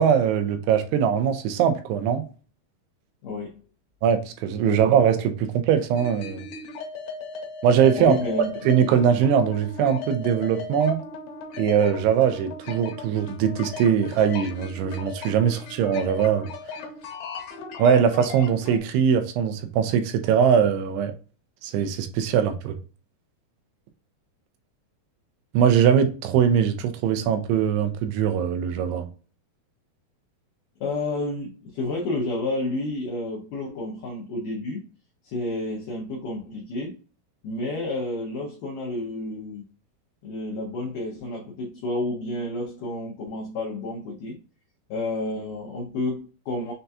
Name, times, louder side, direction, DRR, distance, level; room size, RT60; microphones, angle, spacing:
voice 1, 0.0-2.2 4.0-6.4 7.6-8.2 8.7-11.0 11.6-16.5 17.8-21.1 21.6-22.8 25.5-29.1, right 8 dB, 85° right, 2.6 m, -21 dB
voice 2, 3.2-3.6 4.7-4.9 8.0-8.6 30.8-34.9 35.2-37.0 37.4-39.7 40.2-44.4 44.9-46.7, left 2 dB, 85° left, 1.8 m, -30 dB
sound 1, 6.0-18.8, left 3 dB, 70° left, 2.5 m, -37 dB
6.6 x 2.3 x 2.7 m
omnidirectional pair, 4.8 m